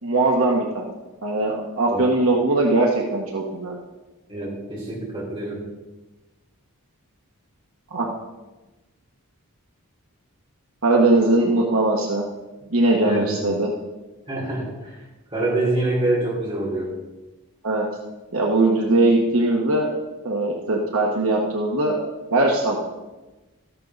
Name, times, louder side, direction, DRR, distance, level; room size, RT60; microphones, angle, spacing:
voice 1, 0.0-0.8 1.2-3.7 7.9-8.1 10.8-12.2 12.7-13.7 17.6-17.9 18.3-19.9 20.2-22.0 22.3-22.8, right 2 dB, 70° right, -1 dB, 1.4 m, -20 dB
voice 2, 4.3-5.6 13.0-13.5 14.3-14.9 15.3-16.9, right 2 dB, 25° right, -6 dB, 5.1 m, -25 dB
14.0 x 11.0 x 4.1 m, 1.1 s
head